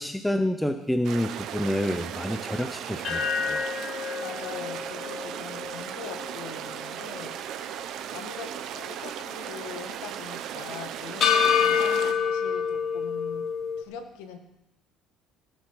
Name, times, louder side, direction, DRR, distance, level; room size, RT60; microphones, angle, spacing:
voice 1, 0.0-3.7, left 1 dB, 5° left, 7 dB, 0.9 m, -28 dB
sound 1, 1.0-12.1, right 10 dB, 65° right, 1.1 m, -37 dB
sound 2, 3.0-7.3 7.7-7.8 11.2-13.8, left 7 dB, 50° left, 1.5 m, -27 dB
voice 2, 4.2-7.4 8.1-13.5 13.8-14.4, left 6 dB, 85° left, 6 dB, 1.8 m, -42 dB
20.0 x 8.1 x 5.0 m, 0.85 s
supercardioid pair, 95°, 0 cm